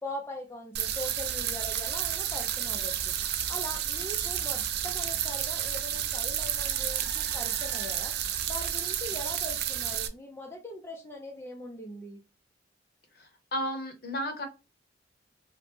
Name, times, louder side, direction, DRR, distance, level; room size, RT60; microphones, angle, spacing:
voice 1, 0.0-2.9 3.5-8.1 8.5-12.2, left 1 dB, 15° left, 0.3 m, -41 dB
sound 1, 0.7-10.1, right 10 dB, 55° right, 0.3 m, -31 dB
voice 2, 13.2-14.5, equal, 55° left, 0.7 m, -33 dB
3.0 x 2.0 x 3.1 m
head